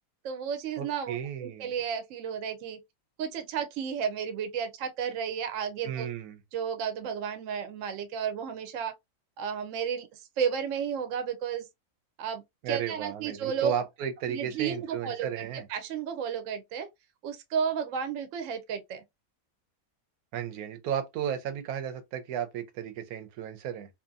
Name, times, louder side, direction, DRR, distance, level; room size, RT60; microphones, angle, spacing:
voice 1, 0.2-2.8 3.2-6.1 6.5-8.9 9.4-10.1 10.4-11.6 12.2-13.7 14.3-16.9 17.2-19.0, right 7 dB, 70° right, 0.9 m, -32 dB
voice 2, 0.8-1.7 5.8-6.4 12.6-15.7 20.3-23.9, right 9 dB, 85° right, 1.1 m, -34 dB
2.7 x 2.5 x 2.4 m
omnidirectional pair, 1.5 m